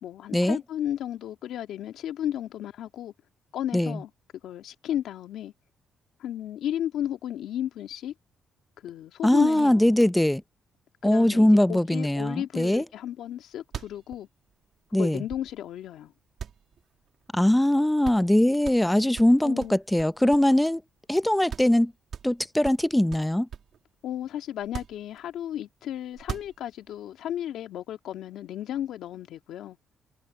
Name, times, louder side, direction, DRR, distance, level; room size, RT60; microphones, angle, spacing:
voice 1, 0.0-3.1 3.5-4.1 4.4-5.5 6.2-8.1 8.8-10.0 11.0-14.3 15.0-16.1 19.4-19.8 24.0-29.8, left 11 dB, 80° left, 2.3 m, -34 dB
voice 2, 9.2-10.4 11.0-12.8 14.9-15.2 17.3-20.8 21.1-21.9 22.2-23.5, left 1 dB, 5° left, 0.7 m, -21 dB
sound 1, 13.3-13.4 13.6-15.8 16.4-17.4 17.7-17.8 18.0-18.3 18.6-20.8 21.1-21.2 21.5-21.8 22.1-23.8 24.6-25.5 26.1-26.9, right 8 dB, 60° right, 3.2 m, -40 dB
cardioid pair, 90°, 0 cm